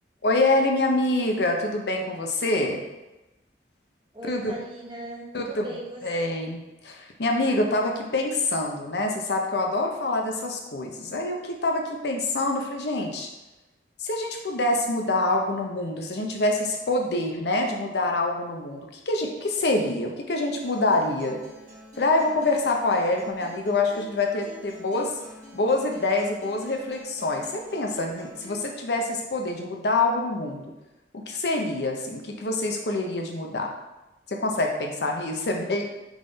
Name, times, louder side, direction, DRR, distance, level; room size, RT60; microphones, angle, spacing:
voice 1, 0.2-2.8 4.3-4.5 5.3-5.7 6.0-6.6 6.8-13.3 14.0-21.4 22.0-25.1 25.5-30.6 31.1-33.7 34.3-35.9, left 2 dB, 70° left, 2 dB, 0.6 m, -26 dB
voice 2, 4.1-6.4, right 1 dB, 25° right, -4 dB, 0.9 m, -39 dB
Acoustic guitar, 20.6-28.6, right 1 dB, 45° right, 1.2 m, -47 dB
3.6 x 3.6 x 3.9 m, 1.0 s
head